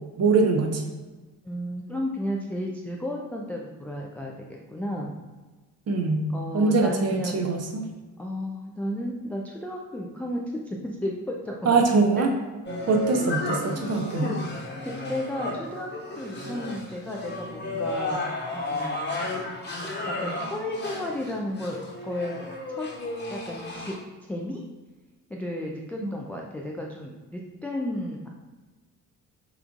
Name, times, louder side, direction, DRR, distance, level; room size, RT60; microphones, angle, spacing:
voice 1, 0.2-0.8 5.9-7.9 11.6-12.3 12.9-14.3 26.0-26.1, right 3 dB, 35° right, 4 dB, 0.8 m, -23 dB
voice 2, 1.4-5.1 6.3-7.4 8.2-11.7 12.0-12.3 13.6-13.8 14.2-14.3 14.8-19.2 20.1-22.4 22.7-22.9 23.3-24.0 24.3-24.6 25.3-28.3, left 1 dB, 5° left, -1 dB, 0.3 m, -33 dB
sound 1, 12.7-24.0, left 2 dB, 20° left, 1.2 m, -33 dB
5.8 x 3.8 x 2.4 m, 1.3 s
figure-of-eight pair, 45°, 48 cm